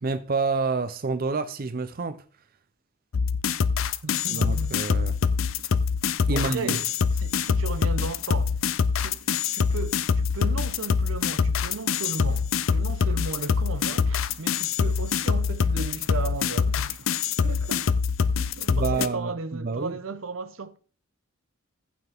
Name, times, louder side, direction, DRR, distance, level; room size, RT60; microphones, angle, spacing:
voice 1, 0.0-2.2 4.3-5.2 6.3-6.7 18.7-19.9, right 4 dB, 45° right, 0.6 m, -28 dB
sound 1, 3.1-19.1, left 5 dB, 70° left, 0.5 m, -24 dB
voice 2, 4.0-4.7 6.3-6.9 7.1-8.7 9.0-18.0 18.4-20.8, right 4 dB, 75° right, 0.8 m, -36 dB
15.0 x 5.8 x 3.5 m
head